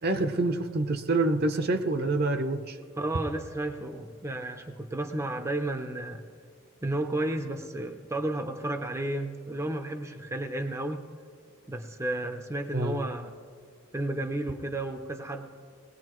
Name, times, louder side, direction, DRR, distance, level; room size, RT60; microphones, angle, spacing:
voice 1, 0.0-2.8 12.7-13.0, right 2 dB, 50° right, 7 dB, 0.7 m, -27 dB
voice 2, 3.0-6.2 6.8-11.0 11.7-13.3 13.9-15.5, right 1 dB, 15° right, 5 dB, 0.6 m, -32 dB
20.0 x 19.0 x 3.1 m, 2.1 s
head